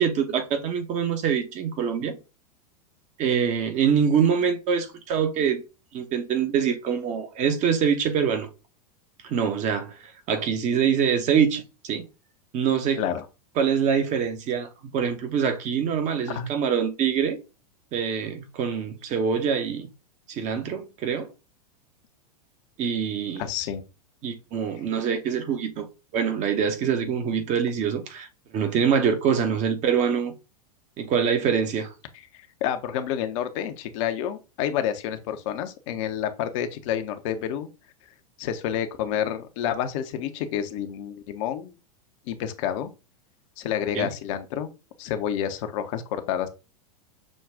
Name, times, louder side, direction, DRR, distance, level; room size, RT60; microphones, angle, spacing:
voice 1, 0.0-2.2 3.2-5.6 5.9-8.5 9.2-12.1 12.5-13.0 13.6-17.4 17.9-19.9 20.3-21.3 22.8-23.5 24.2-25.9 26.1-28.3 28.5-30.3 31.0-31.9 43.9-44.1, right 7 dB, 40° right, 1.0 m, -24 dB
voice 2, 23.4-23.8 32.6-37.7 38.4-41.7 42.3-42.9 43.6-44.7 45.0-46.5, left 9 dB, 55° left, 0.8 m, -29 dB
6.3 x 2.3 x 3.5 m
hypercardioid pair, 100°, 20 cm